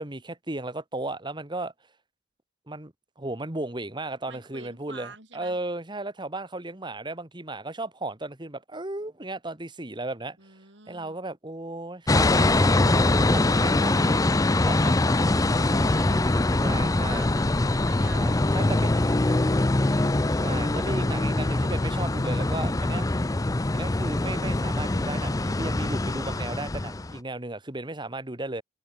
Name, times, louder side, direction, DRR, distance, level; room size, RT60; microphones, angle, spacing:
voice 1, 0.0-1.7 2.7-10.4 10.9-14.9 15.7-16.1 16.6-17.2 18.1-18.9 20.4-23.1 23.7-28.6, right 2 dB, 25° right, 1.8 m, -35 dB
voice 2, 4.3-5.6 10.4-11.2 14.4-14.7 15.3-20.4, right 4 dB, 70° right, 6.0 m, -48 dB
sound 1, 12.1-27.2, left 2 dB, 20° left, 0.5 m, -23 dB
head